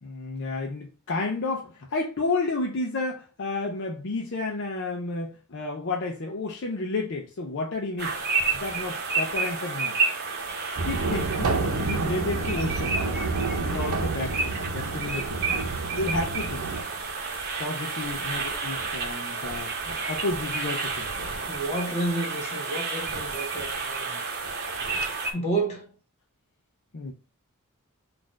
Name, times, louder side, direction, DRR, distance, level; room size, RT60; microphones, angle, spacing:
voice 1, 0.0-8.2 8.5-10.0 10.8-13.0 13.6-15.4 16.0-16.6 17.6-21.1 26.9-27.1, left 3 dB, 55° left, 0.6 m, -31 dB
sound 1, 8.0-25.3, right 4 dB, 45° right, 1.0 m, -31 dB
sound 2, 10.8-16.8, right 3 dB, 85° right, 0.7 m, -29 dB
voice 2, 21.5-24.2 25.3-25.9, right 2 dB, 30° left, 1.6 m, -30 dB
4.3 x 2.5 x 4.4 m
head